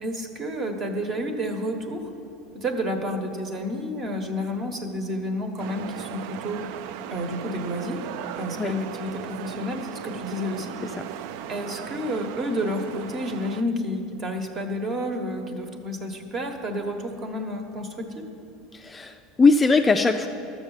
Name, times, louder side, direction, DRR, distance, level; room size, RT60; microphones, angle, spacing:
voice 1, 0.0-2.1 2.5-6.6 7.1-8.1 8.4-10.7 11.5-18.2, equal, 30° right, 5 dB, 1.2 m, -30 dB
sound 1, 5.6-13.6, right 10 dB, 65° right, 0.4 m, -37 dB
voice 2, 18.7-20.3, left 4 dB, 15° left, 5 dB, 0.4 m, -20 dB
12.5 x 7.3 x 7.2 m, 2.7 s
supercardioid pair, 145°, 0 cm